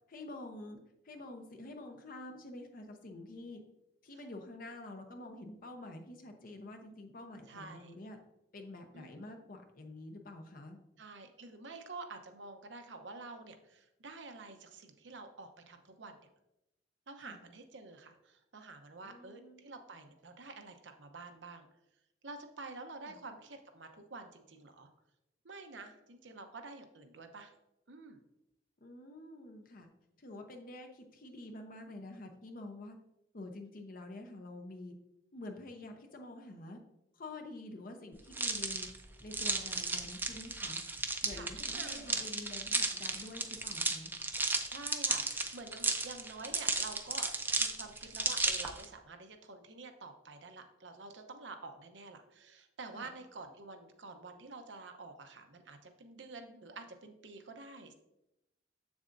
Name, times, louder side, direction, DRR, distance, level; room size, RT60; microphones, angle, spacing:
voice 1, 0.1-0.8 1.0-3.6 4.0-8.2 8.5-10.8 17.2-17.4 19.0-19.7 23.0-23.2 28.8-29.9 30.2-33.0 33.3-35.0 35.3-36.8 37.1-38.9 39.2-40.8 41.2-44.1 52.9-53.1, left 2 dB, 50° left, 4 dB, 0.7 m, -48 dB
voice 2, 7.5-8.0 8.9-9.2 11.0-16.2 17.1-21.7 22.2-24.9 25.4-27.5 27.9-28.2 41.3-42.3 44.7-47.3 47.6-57.9, right 3 dB, 75° right, 6 dB, 0.8 m, -49 dB
sound 1, 38.3-48.8, right 3 dB, 10° right, 0.5 m, -34 dB
7.5 x 7.1 x 2.6 m, 0.88 s
head